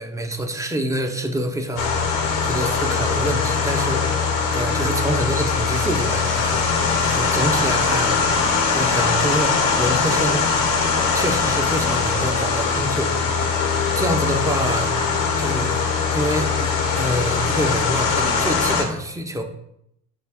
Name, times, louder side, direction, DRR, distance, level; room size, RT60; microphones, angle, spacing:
voice 1, 0.0-2.2 2.4-4.2 4.5-6.7 7.0-8.2 8.7-10.5 11.1-13.2 14.0-14.9 15.4-15.8 16.1-19.4, right 1 dB, 10° right, 4 dB, 0.5 m, -26 dB
sound 1, 1.8-18.8, left 5 dB, 90° left, 0.7 m, -21 dB
4.5 x 2.3 x 3.4 m, 0.75 s
supercardioid pair, 65°, 36 cm